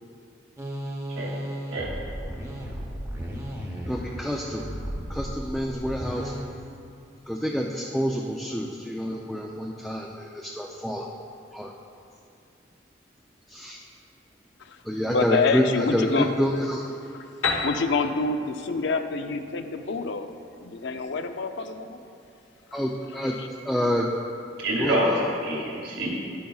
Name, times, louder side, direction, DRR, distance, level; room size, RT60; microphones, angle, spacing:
sound 1, 0.6-6.4, equal, 15° right, 0.8 m, -34 dB
voice 1, 3.9-4.7 5.1-6.3 7.3-11.1 11.5-11.7 13.5-13.8 14.9-16.8 22.7-23.3 23.7-24.1 24.8-25.0, equal, ahead, -2 dB, 0.3 m, -28 dB
voice 2, 15.1-16.3 17.6-20.3 20.6-22.0, left 4 dB, 65° left, 7 dB, 0.5 m, -26 dB
Piano, 17.4-21.1, left 4 dB, 90° left, 1.0 m, -33 dB
voice 3, 24.6-26.1, equal, 75° right, -4 dB, 2.2 m, -26 dB
11.5 x 9.2 x 2.3 m, 2.4 s
head